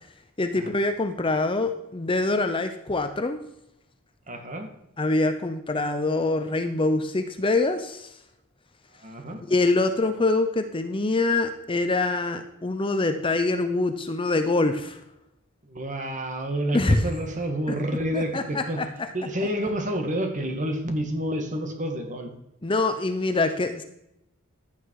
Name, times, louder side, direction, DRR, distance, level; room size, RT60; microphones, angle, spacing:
voice 1, 0.4-3.4 5.0-8.1 9.5-15.0 16.7-17.0 17.7-17.8 18.1-18.9 22.6-23.8, left 2 dB, 25° left, 8 dB, 0.7 m, -24 dB
voice 2, 4.3-4.7 9.0-9.4 15.6-18.8 19.1-22.3, right 1 dB, 35° right, 4 dB, 2.1 m, -29 dB
15.0 x 11.0 x 4.8 m, 0.84 s
head